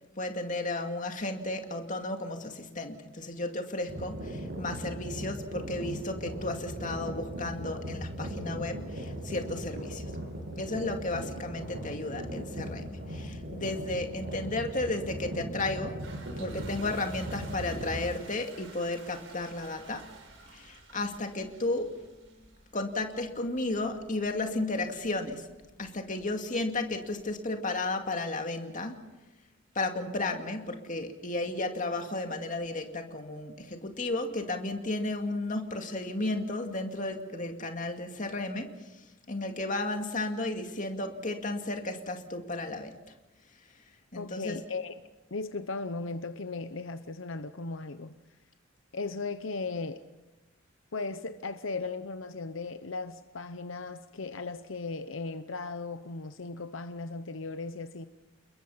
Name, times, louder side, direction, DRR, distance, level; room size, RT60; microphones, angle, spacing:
voice 1, 0.2-10.1 10.6-16.0 16.4-20.1 20.5-22.0 22.7-25.5 25.8-29.0 29.7-38.8 39.3-43.0 44.1-44.6, left 2 dB, 40° left, 2.3 m, -33 dB
sound 1, 3.9-18.0, equal, 60° right, 8.0 m, -38 dB
Toilet flush, 15.7-27.3, right 3 dB, 85° right, 6.2 m, -53 dB
voice 2, 44.1-44.9 45.3-48.1 48.9-50.0 50.9-58.1, left 3 dB, 80° left, 0.9 m, -37 dB
29.5 x 21.5 x 5.7 m
head